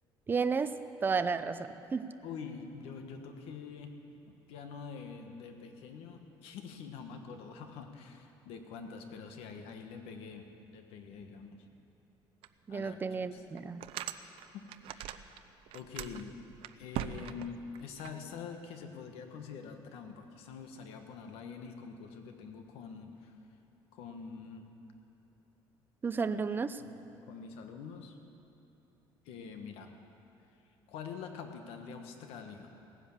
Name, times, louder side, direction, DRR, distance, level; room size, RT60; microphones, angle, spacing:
voice 1, 0.3-0.8 1.0-2.1 12.7-13.8 26.0-26.8, right 5 dB, 20° right, 11 dB, 0.5 m, -32 dB
voice 2, 2.2-4.0 4.3-11.6 12.7-13.0 13.3-13.4 14.2-15.4 15.7-16.4 16.8-23.3 23.9-24.7 26.3-27.0 27.3-28.2 29.2-30.0 30.9-32.7, left 6 dB, 90° left, 5 dB, 1.4 m, -46 dB
sound 1, 12.4-12.5 13.0-13.1 13.6-15.4 15.7-18.1, right 11 dB, 75° right, 0.6 m, -41 dB
17.5 x 10.0 x 7.3 m, 2.9 s
cardioid pair, 145°, 9 cm